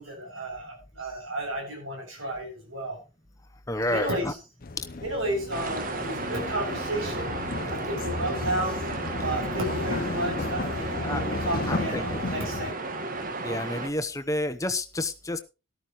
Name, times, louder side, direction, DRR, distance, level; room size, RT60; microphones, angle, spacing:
voice 1, 0.0-3.0 3.8-4.4 5.0-7.3 7.7-8.8 9.2-12.9, right 1 dB, 75° right, 2 dB, 7.1 m, -32 dB
voice 2, 3.7-4.3 11.0-11.2 11.7-12.1 13.4-15.4, left 1 dB, 15° left, 9 dB, 0.9 m, -29 dB
sound 1, 4.6-12.7, left 2 dB, 45° left, 0.7 m, -34 dB
sound 2, 5.5-13.9, right 2 dB, 40° right, 1.5 m, -33 dB
13.0 x 13.0 x 3.1 m, 0.30 s
head